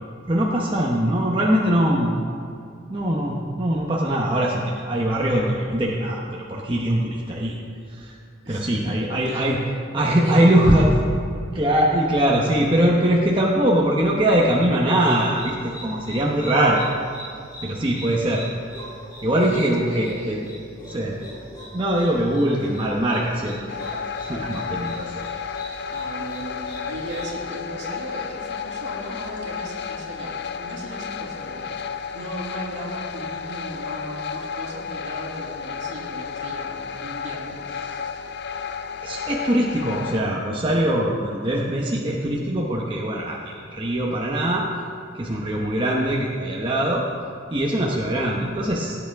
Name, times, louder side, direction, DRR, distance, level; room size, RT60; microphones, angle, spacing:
voice 1, 0.3-2.2 2.9-7.6 7.9-8.2 8.5-9.6 9.9-10.9 11.5-16.9 17.6-18.4 19.2-20.4 20.9-21.1 21.7-25.1 39.0-44.6 45.1-47.0 47.5-49.0, right 1 dB, 25° right, -3 dB, 0.9 m, -22 dB
voice 2, 8.4-9.0 9.2-10.9 19.4-20.5 20.8-21.5 25.9-38.2, right 1 dB, 60° right, -4 dB, 2.5 m, -37 dB
sound 1, 15.1-27.3, equal, 20° left, 3.1 m, -43 dB
sound 2, 23.7-40.2, left 6 dB, 55° left, 0.4 m, -32 dB
17.0 x 9.0 x 3.5 m, 2.4 s
head